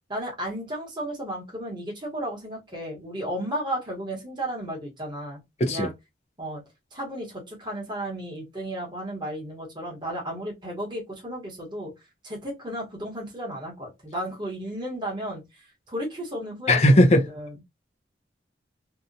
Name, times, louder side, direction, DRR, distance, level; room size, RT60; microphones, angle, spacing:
voice 1, 0.1-5.4 5.7-5.9 6.4-6.6 6.9-11.9 12.2-17.0 17.3-17.6, right 1 dB, 25° right, 1.0 m, -34 dB
voice 2, 16.7-17.2, left 1 dB, 35° left, 0.6 m, -17 dB
2.7 x 2.2 x 2.5 m
head